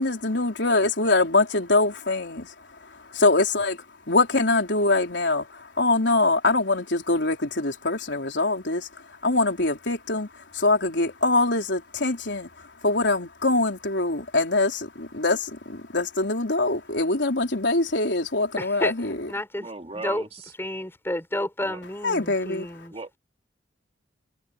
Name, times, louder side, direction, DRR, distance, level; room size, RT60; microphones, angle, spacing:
voice 1, 0.0-3.8 4.1-19.3 22.0-22.7, left 2 dB, 75° left, 4.3 m, -24 dB
voice 2, 18.6-20.3 20.6-22.9, left 1 dB, 15° left, 5.2 m, -31 dB
voice 3, 19.6-20.3 21.6-21.8 22.9-23.2, right 3 dB, 35° right, 3.2 m, -37 dB
head